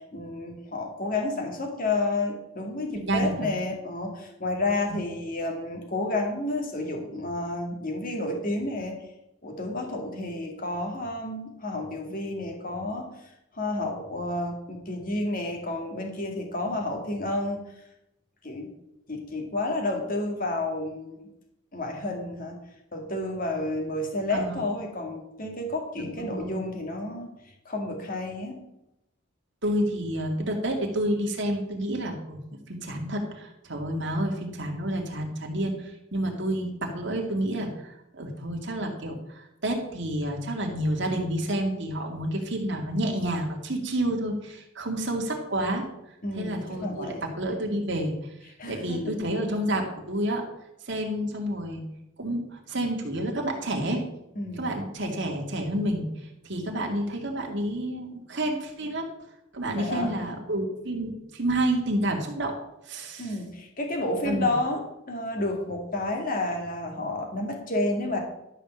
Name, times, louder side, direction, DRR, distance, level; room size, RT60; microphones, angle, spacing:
voice 1, 0.1-9.0 9.4-13.1 13.5-17.6 18.4-18.7 19.1-21.2 21.7-22.6 22.9-27.3 27.7-28.6 46.2-47.2 48.6-49.1 54.4-54.8 59.7-60.1 63.2-64.8 65.1-68.2, left 2 dB, 45° left, 2 dB, 2.2 m, -30 dB
voice 2, 2.9-3.5 4.9-5.0 24.3-24.6 26.0-26.6 29.6-32.4 32.7-45.9 46.4-48.3 48.7-50.4 50.9-51.8 52.2-54.0 54.6-56.1 56.4-59.1 59.5-62.5 62.9-63.3 64.2-64.5, right 1 dB, 60° right, 1 dB, 2.4 m, -29 dB
12.5 x 5.1 x 7.2 m, 0.85 s
head